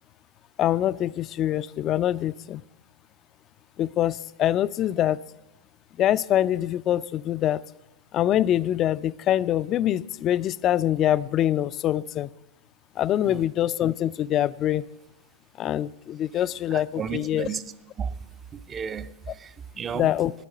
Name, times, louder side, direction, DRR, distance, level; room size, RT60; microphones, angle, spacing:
voice 1, 0.6-2.6 3.8-5.2 6.0-7.6 8.1-12.3 13.0-14.8 15.6-17.5 19.9-20.3, left 12 dB, 35° left, 0.4 m, -24 dB
voice 2, 16.7-17.6 18.0-18.1 18.5-20.1, right 7 dB, 25° right, 0.5 m, -33 dB
10.0 x 9.8 x 8.3 m
hypercardioid pair, 100°, 0 cm